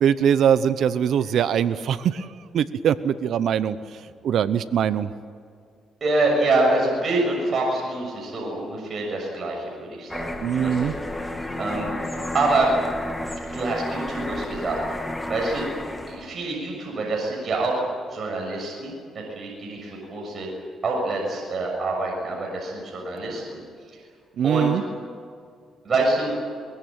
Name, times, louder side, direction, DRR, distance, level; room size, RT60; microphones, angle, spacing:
voice 1, 0.0-2.3 2.5-3.8 4.2-5.1 10.4-10.9 24.4-24.8, right 8 dB, 70° right, 13 dB, 0.8 m, -22 dB
voice 2, 6.0-10.3 10.6-10.9 11.5-11.9 12.3-12.7 13.5-15.0 15.3-15.7 16.1-17.9 18.1-20.5 20.8-23.6 24.4-24.7 25.9-26.3, right 2 dB, 45° right, -1 dB, 6.8 m, -26 dB
sound 1, 10.1-16.3, left 1 dB, 10° left, 2.8 m, -32 dB
23.5 x 22.0 x 9.0 m, 2.2 s
cardioid pair, 90°, 0 cm